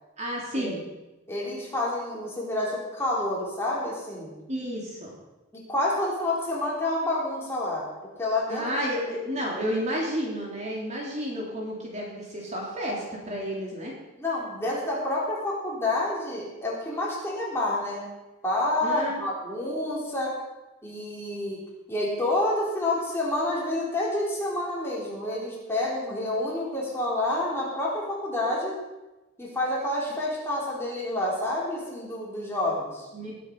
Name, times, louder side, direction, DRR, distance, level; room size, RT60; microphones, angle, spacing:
voice 1, 0.2-0.8 4.5-5.1 8.5-13.9 18.8-19.2 33.1-33.3, equal, 35° right, -3 dB, 3.3 m, -31 dB
voice 2, 1.3-4.3 5.5-7.9 8.2-8.6 14.2-18.1 18.4-20.4 20.8-21.6 21.9-28.8 29.4-33.1, left 1 dB, 15° left, -5 dB, 4.0 m, -28 dB
19.5 x 8.4 x 5.5 m, 1.0 s
head